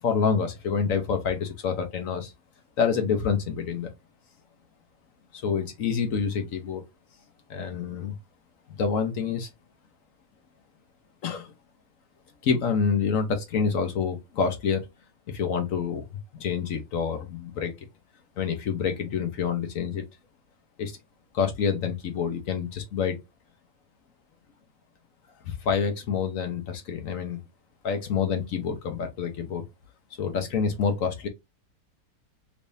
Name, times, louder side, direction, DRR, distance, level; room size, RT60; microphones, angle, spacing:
voice 1, 0.0-2.3 2.8-3.9 5.3-6.8 7.5-8.2 8.7-9.5 11.2-11.5 12.4-14.9 15.3-16.0 16.3-17.7 18.4-20.0 20.8-21.0 21.3-23.2 25.4-27.4 27.8-29.6 30.2-31.3, left 6 dB, 60° left, 1.0 m, -27 dB
3.4 x 3.1 x 2.6 m
omnidirectional pair, 1.8 m